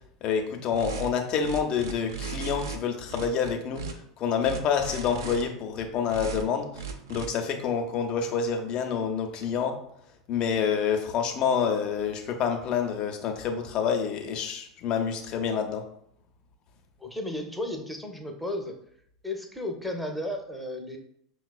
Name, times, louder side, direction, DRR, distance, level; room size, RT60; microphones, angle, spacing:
voice 1, 0.2-3.8 4.2-6.8 7.1-9.8 10.3-15.8, left 7 dB, 45° left, 4 dB, 0.7 m, -27 dB
sound 1, 0.7-1.1 1.4-2.8 3.1-3.9 4.4-5.4 6.1-6.4 6.7-7.3, right 4 dB, 70° right, 0.5 m, -36 dB
voice 2, 17.0-18.8 19.2-21.0, left 1 dB, ahead, 2 dB, 0.6 m, -34 dB
5.8 x 2.3 x 2.2 m, 0.69 s
figure-of-eight pair, 80°, 2 cm